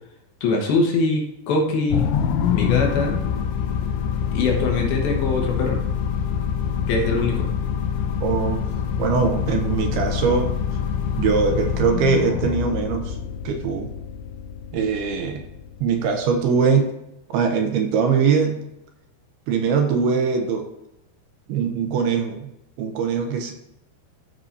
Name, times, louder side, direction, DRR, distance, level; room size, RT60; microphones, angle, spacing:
voice 1, 0.4-2.1 2.5-3.2 4.3-5.9 6.9-7.5, left 3 dB, 70° left, -1 dB, 3.0 m, -22 dB
sound 1, 1.9-16.4, left 8 dB, 85° left, 2.8 m, -25 dB
voice 2, 8.2-8.6 9.0-10.5 11.2-13.2 13.5-13.9 14.7-15.4 15.8-16.9 17.3-18.6 19.5-20.7 21.5-22.5 22.8-23.5, right 5 dB, 80° right, 5 dB, 2.6 m, -21 dB
14.0 x 4.9 x 2.7 m, 0.85 s
omnidirectional pair, 4.8 m